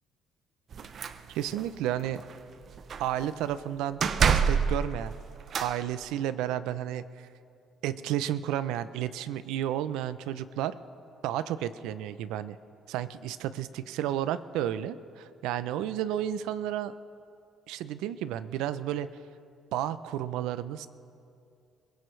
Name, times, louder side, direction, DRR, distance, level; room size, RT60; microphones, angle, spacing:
sound 1, 0.7-1.7 2.0-2.4 2.6-3.3 4.0-5.8, right 6 dB, 55° right, 0.7 m, -27 dB
voice 1, 1.3-2.2 3.0-5.1 5.6-7.3 7.8-10.7 11.2-12.6 12.9-16.9 17.7-19.1 19.7-20.9, right 11 dB, 90° right, 14 dB, 0.5 m, -32 dB
22.0 x 17.0 x 3.2 m, 2.5 s
cardioid pair, 90°, 0 cm